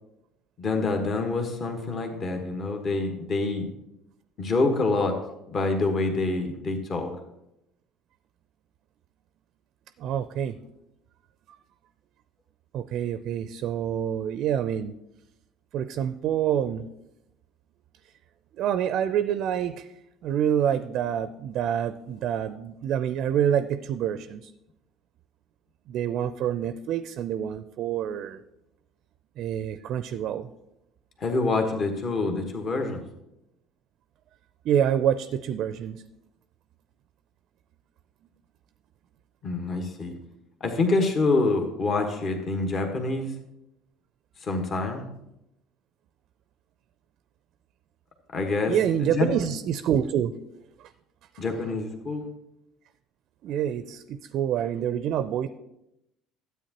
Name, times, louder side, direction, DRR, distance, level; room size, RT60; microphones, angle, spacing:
voice 1, 0.6-3.7 4.4-5.2 5.5-7.1 31.2-33.0 39.4-40.1 40.6-43.3 44.4-45.0 48.3-48.7 49.0-49.3 51.4-52.2, left 3 dB, 45° left, 4 dB, 1.3 m, -26 dB
voice 2, 10.0-10.6 12.7-14.9 15.7-16.9 18.5-19.9 20.2-24.5 25.9-28.4 29.4-30.5 34.6-36.0 48.6-50.3 50.8-50.9 51.3-51.4 53.4-55.5, right 9 dB, 55° right, 13 dB, 0.4 m, -27 dB
12.5 x 8.2 x 2.9 m, 0.86 s
hypercardioid pair, 65°, 0 cm